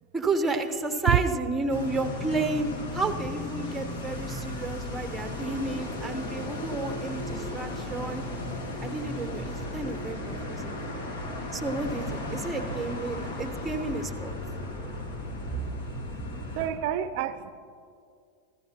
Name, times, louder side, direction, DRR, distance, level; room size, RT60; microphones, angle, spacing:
voice 1, 0.1-8.2 8.8-11.1 11.5-14.3, right 3 dB, 10° right, 6 dB, 0.9 m, -31 dB
sound 1, 1.7-16.7, left 2 dB, 80° left, 2.0 m, -35 dB
voice 2, 14.8-15.2 16.4-17.5, right 12 dB, 60° right, 12 dB, 0.4 m, -31 dB
15.0 x 14.0 x 2.9 m, 2.3 s
supercardioid pair, 125°, 0 cm